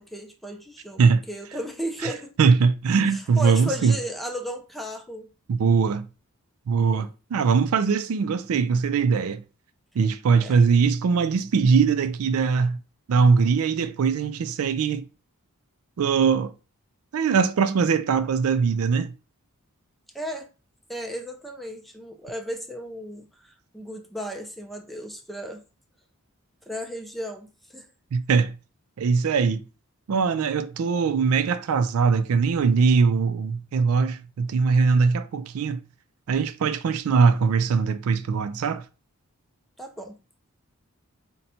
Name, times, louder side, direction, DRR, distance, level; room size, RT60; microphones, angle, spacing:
voice 1, 0.0-1.0 1.3-2.4 3.1-5.3 6.8-7.1 10.4-10.6 20.1-20.5 20.9-25.6 26.6-27.9 39.8-40.2, equal, ahead, 0.5 m, -35 dB
voice 2, 2.4-3.9 5.5-6.1 6.7-9.4 10.0-12.8 13.1-15.0 16.0-16.5 17.1-19.1 28.1-28.6 29.0-29.6 30.1-35.8 36.3-38.8, right 5 dB, 75° right, 0.4 m, -21 dB
3.9 x 2.2 x 4.2 m
head